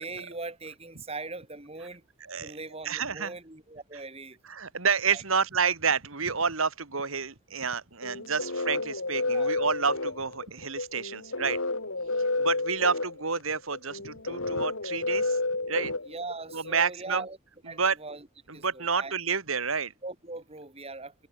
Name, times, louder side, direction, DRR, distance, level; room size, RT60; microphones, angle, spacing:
voice 1, 0.0-2.0 2.4-4.4 5.1-5.2 9.2-9.5 16.1-17.4 17.7-18.3 18.5-19.1 20.0-21.3, right 3 dB, 30° right, 3.3 m, -40 dB
voice 2, 2.8-3.3 4.5-11.6 12.4-15.4 15.7-16.0 16.5-17.2 17.8-18.0 18.6-19.9, right 5 dB, 75° right, 2.6 m, -29 dB
sound 1, 8.0-16.7, left 2 dB, 70° left, 3.7 m, -31 dB
open air
head